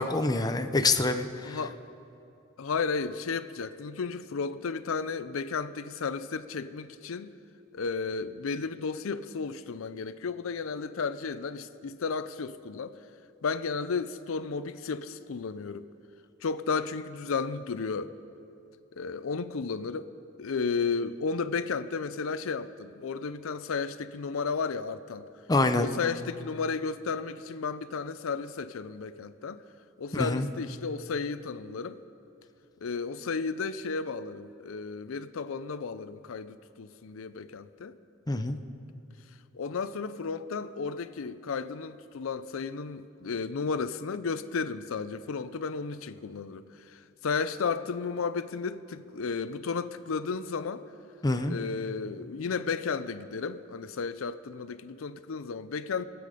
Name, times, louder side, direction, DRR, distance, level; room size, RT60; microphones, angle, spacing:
voice 1, 0.0-1.6 25.5-25.9 30.1-30.5 38.3-38.6 51.2-51.6, left 2 dB, 20° left, 7 dB, 0.6 m, -26 dB
voice 2, 1.4-1.8 2.6-7.3 7.7-12.9 13.4-15.9 16.4-18.1 18.9-20.1 20.4-25.2 25.8-29.6 30.0-32.0 32.8-37.9 39.5-50.8 51.5-56.0, left 5 dB, 85° left, 13 dB, 0.5 m, -33 dB
23.5 x 8.5 x 5.0 m, 2.8 s
head